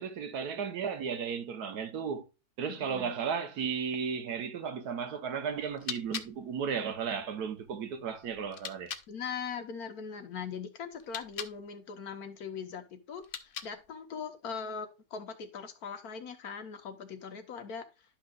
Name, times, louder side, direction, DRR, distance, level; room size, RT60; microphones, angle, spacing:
voice 1, 0.0-2.2 2.6-8.9, right 6 dB, 70° right, 1.4 m, -34 dB
voice 2, 2.7-3.1 9.1-17.9, left 6 dB, 65° left, 1.5 m, -40 dB
sound 1, 5.5-9.1 10.9-11.6 13.1-14.0, left 8 dB, 80° left, 0.4 m, -43 dB
11.5 x 5.8 x 2.3 m
omnidirectional pair, 1.8 m